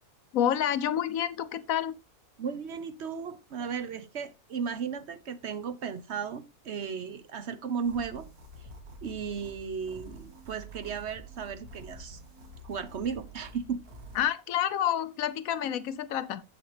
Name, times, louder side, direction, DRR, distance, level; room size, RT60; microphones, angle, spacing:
voice 1, 0.3-1.9 14.1-16.4, left 10 dB, 70° left, 1.0 m, -28 dB
voice 2, 2.4-8.3 9.0-12.2 12.6-13.8, right 6 dB, 55° right, 0.9 m, -35 dB
sound 1, 7.8-14.3, right 1 dB, 75° right, 1.8 m, -48 dB
7.7 x 7.7 x 3.2 m
omnidirectional pair, 1.6 m